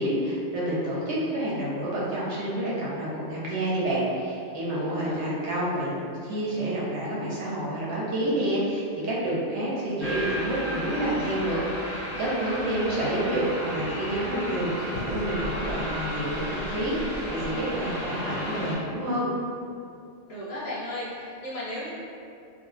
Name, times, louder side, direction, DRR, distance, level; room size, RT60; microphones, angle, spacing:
voice 1, 0.0-5.9 6.2-17.0 17.3-19.3, right 1 dB, 80° right, -7 dB, 1.0 m, -28 dB
voice 2, 4.7-5.4 12.4-13.0 20.3-21.9, left 1 dB, 40° left, -9 dB, 0.6 m, -36 dB
sound 1, 10.0-18.7, equal, 55° right, 1.2 m, -33 dB
2.2 x 2.1 x 3.1 m, 2.4 s
omnidirectional pair, 1.2 m